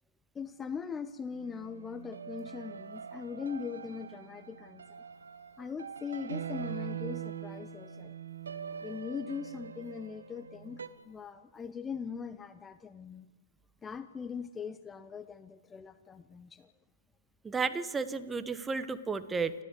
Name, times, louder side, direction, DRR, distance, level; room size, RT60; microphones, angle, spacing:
voice 1, 0.3-5.0 5.6-8.1 8.8-13.3 13.8-16.7, left 6 dB, 15° left, 13 dB, 0.7 m, -41 dB
sound 1, 1.3-10.9, right 8 dB, 75° right, 1.4 m, -43 dB
voice 2, 17.4-19.5, right 4 dB, 10° right, 12 dB, 1.1 m, -33 dB
29.0 x 13.5 x 8.2 m, 1.4 s
hypercardioid pair, 120°, 0 cm